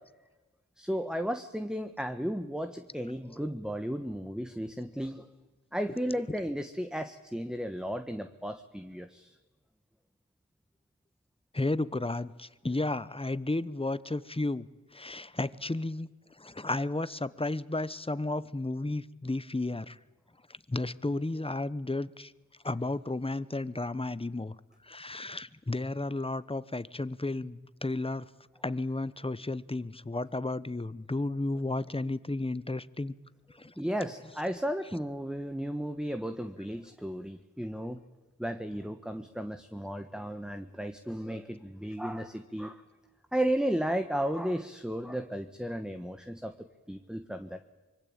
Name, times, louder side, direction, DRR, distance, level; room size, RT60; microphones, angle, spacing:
voice 1, 0.8-5.3 5.7-9.3 33.8-38.0 38.4-42.8 43.3-46.5 46.9-47.7, equal, ahead, 8 dB, 1.4 m, -34 dB
voice 2, 11.5-14.7 14.9-16.1 16.4-20.0 20.7-22.3 22.6-24.5 24.8-28.2 28.6-33.1 33.6-33.7, left 2 dB, 20° left, 16 dB, 1.0 m, -33 dB
25.0 x 23.5 x 8.8 m, 1.2 s
cardioid pair, 50°, 30 cm